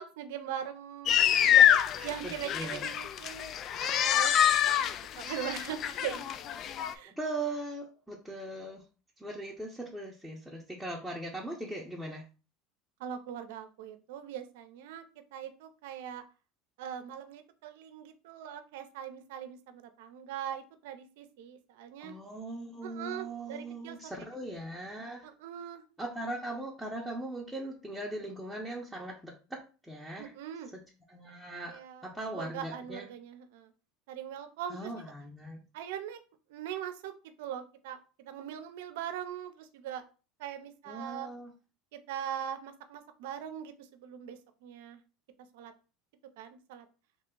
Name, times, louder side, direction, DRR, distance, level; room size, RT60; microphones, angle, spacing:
voice 1, 0.0-1.7 2.0-4.3 5.2-6.2 6.9-7.1 13.0-15.0 15.3-16.2 16.8-22.2 22.8-24.1 24.5-24.6 25.2-25.8 30.2-30.7 31.7-32.1 32.3-33.7 34.1-35.1 35.7-36.2 36.5-37.1 37.4-40.0 40.4-41.3 41.9-45.0 45.5-45.7 46.4-46.9, right 9 dB, 80° right, 9 dB, 0.5 m, -41 dB
sound 1, 1.1-6.9, left 10 dB, 45° left, 0.3 m, -26 dB
voice 2, 2.5-2.9 7.1-8.8 9.2-12.2 22.0-25.3 26.0-30.3 31.1-33.0 34.7-35.6 40.9-41.5, right 2 dB, ahead, -5 dB, 0.8 m, -39 dB
3.2 x 2.4 x 3.7 m, 0.34 s
supercardioid pair, 105°, 0 cm